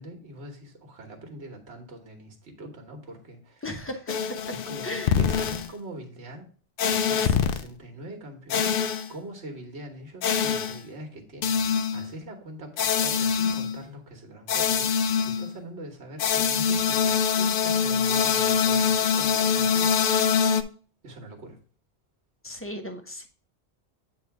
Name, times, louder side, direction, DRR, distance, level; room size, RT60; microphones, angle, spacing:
voice 1, 0.0-3.6 4.5-6.5 6.8-8.8 9.1-20.0 21.0-21.6, right 1 dB, 85° right, 3 dB, 1.5 m, -43 dB
voice 2, 3.6-4.4 4.8-5.2 7.2-7.4 22.4-23.3, left 1 dB, 15° left, 5 dB, 0.8 m, -36 dB
sound 1, 4.1-5.7 6.8-7.6 8.5-9.1 10.2-10.8 11.4-12.1 12.8-13.8 14.5-15.5 16.2-20.6, left 7 dB, 65° left, 0.7 m, -24 dB
8.4 x 2.8 x 5.7 m, 0.42 s
omnidirectional pair, 1.1 m